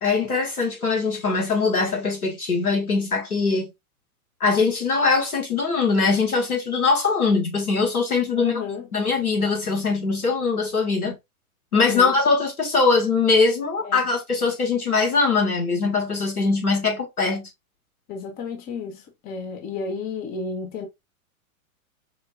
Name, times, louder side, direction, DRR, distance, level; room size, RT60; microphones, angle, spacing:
voice 1, 0.0-3.7 4.4-8.6 8.9-11.2 11.7-17.5, left 4 dB, 85° left, 1.6 m, -22 dB
voice 2, 8.4-8.9 11.7-12.1 13.8-14.0 18.1-20.9, left 5 dB, 20° left, 0.6 m, -32 dB
4.8 x 2.2 x 2.3 m
figure-of-eight pair, 105°, 43 cm